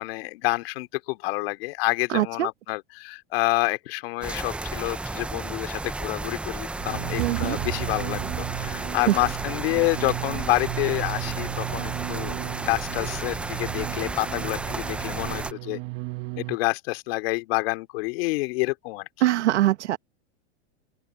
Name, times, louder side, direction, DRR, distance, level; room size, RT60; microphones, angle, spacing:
voice 1, 0.0-8.2 8.5-12.4 12.6-15.8 16.4-19.1, left 23 dB, 60° left, 2.6 m, -28 dB
voice 2, 2.1-2.5 7.2-7.6 9.1-9.2 19.2-20.0, right 14 dB, 85° right, 1.1 m, -22 dB
sound 1, 4.2-15.5, right 2 dB, 5° right, 0.3 m, -33 dB
sound 2, 6.8-16.6, right 24 dB, 40° right, 1.0 m, -34 dB
open air
supercardioid pair, 130°, 33 cm